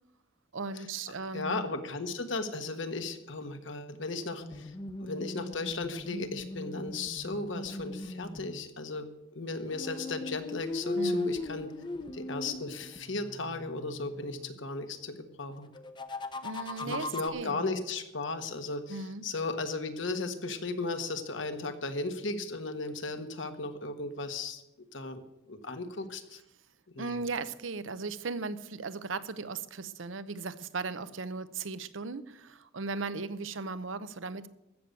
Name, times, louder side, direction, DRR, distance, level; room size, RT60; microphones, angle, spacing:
voice 1, 0.5-1.7 11.0-11.3 16.4-17.8 18.9-19.2 27.0-34.5, right 4 dB, 85° right, 14 dB, 0.8 m, -37 dB
voice 2, 1.3-4.7 5.0-11.7 12.1-15.7 16.8-24.6 24.9-25.2 25.5-26.4 26.9-27.2, left 3 dB, 75° left, 7 dB, 1.5 m, -36 dB
sound 1, 4.4-8.7 9.7-14.6 15.7-17.3, left 2 dB, 25° left, 0.8 m, -38 dB
15.0 x 6.9 x 9.0 m, 0.87 s
head